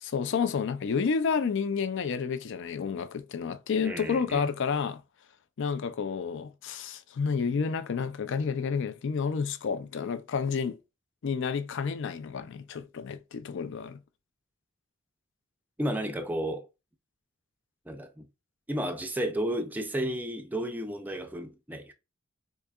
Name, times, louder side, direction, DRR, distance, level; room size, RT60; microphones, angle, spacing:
voice 1, 0.0-5.0 5.6-10.8 11.2-14.0, left 5 dB, 60° left, 0.4 m, -30 dB
voice 2, 3.8-4.5 15.8-16.7 17.9-18.3 18.7-21.9, right 1 dB, 10° right, 0.4 m, -32 dB
4.7 x 2.7 x 2.3 m
head